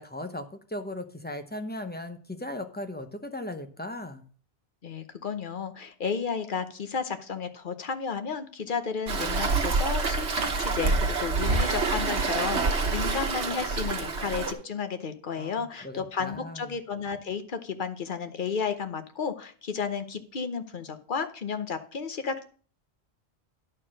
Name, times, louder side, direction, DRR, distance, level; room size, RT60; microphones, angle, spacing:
voice 1, 0.0-4.2 15.3-16.7, left 1 dB, 10° left, 7 dB, 0.7 m, -37 dB
voice 2, 4.8-22.4, left 6 dB, 50° left, 8 dB, 1.0 m, -33 dB
Waves surf, 9.1-14.5, right 3 dB, 80° right, 1.4 m, -27 dB
10.5 x 4.5 x 6.2 m, 0.43 s
omnidirectional pair, 1.1 m